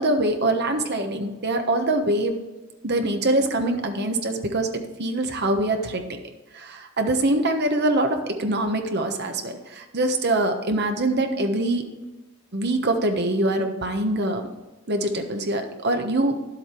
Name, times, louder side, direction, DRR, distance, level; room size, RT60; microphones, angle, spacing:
voice 1, 0.0-2.4 2.8-4.7 5.0-6.1 6.5-11.8 12.5-14.5 14.9-16.5, right 1 dB, 50° right, 5 dB, 1.2 m, -24 dB
11.0 x 7.9 x 4.6 m, 1.2 s
head